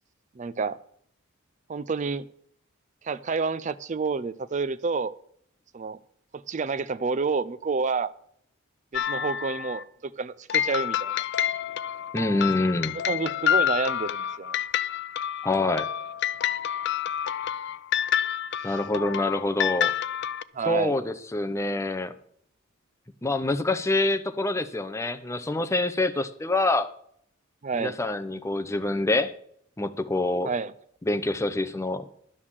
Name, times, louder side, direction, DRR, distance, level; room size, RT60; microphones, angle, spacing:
voice 1, 0.4-0.8 1.7-2.3 3.0-5.2 5.7-6.0 6.3-8.1 8.9-11.2 12.9-14.6 18.6-18.8 20.5-21.0 27.6-28.0 30.4-30.7, right 4 dB, 35° right, 0.4 m, -29 dB
sound 1, 8.9-9.8 10.5-20.4, left 10 dB, 55° left, 0.4 m, -28 dB
voice 2, 12.1-12.9 15.4-15.9 18.6-19.9 20.7-22.1 23.2-26.9 27.7-29.3 29.8-30.5 31.1-32.1, left 2 dB, 15° left, 0.6 m, -26 dB
11.5 x 6.4 x 7.3 m
head